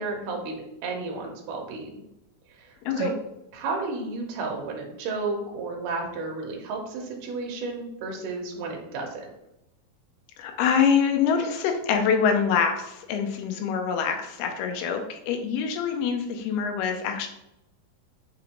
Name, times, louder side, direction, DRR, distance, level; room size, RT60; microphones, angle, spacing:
voice 1, 0.0-2.0 2.6-3.1 3.5-9.3, right 3 dB, 70° right, 1 dB, 2.1 m, -32 dB
voice 2, 10.4-17.3, left 6 dB, 90° left, 5 dB, 2.6 m, -25 dB
6.3 x 2.5 x 2.9 m, 0.87 s
omnidirectional pair, 4.3 m